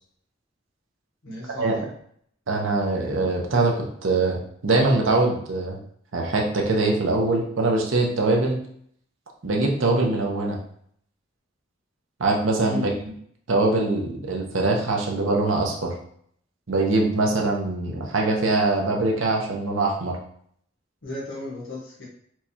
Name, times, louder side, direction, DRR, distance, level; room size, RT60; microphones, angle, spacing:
voice 1, 1.2-1.9 12.7-12.8 21.0-22.0, left 2 dB, 80° left, -5 dB, 1.2 m, -34 dB
voice 2, 2.5-5.8 6.1-8.6 9.4-10.6 12.2-12.9 13.5-15.9 16.7-20.2, right 2 dB, 85° right, 0 dB, 0.8 m, -23 dB
4.5 x 2.3 x 2.8 m, 0.64 s
head